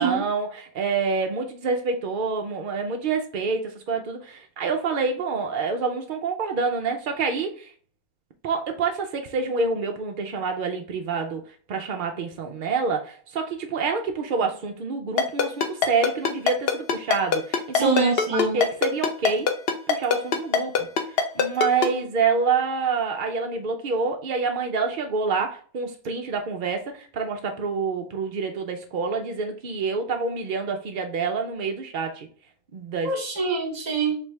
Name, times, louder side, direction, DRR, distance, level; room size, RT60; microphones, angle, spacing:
voice 1, 0.0-7.7 8.4-11.4 11.7-19.5 19.9-20.9 21.3-32.3 32.7-33.1, right 4 dB, 85° right, 0.4 m, -27 dB
Ringtone, 15.2-21.9, left 6 dB, 60° left, 0.6 m, -21 dB
voice 2, 17.7-18.6 33.0-34.2, right 3 dB, 40° right, 0.7 m, -24 dB
4.5 x 2.6 x 3.2 m
omnidirectional pair, 1.5 m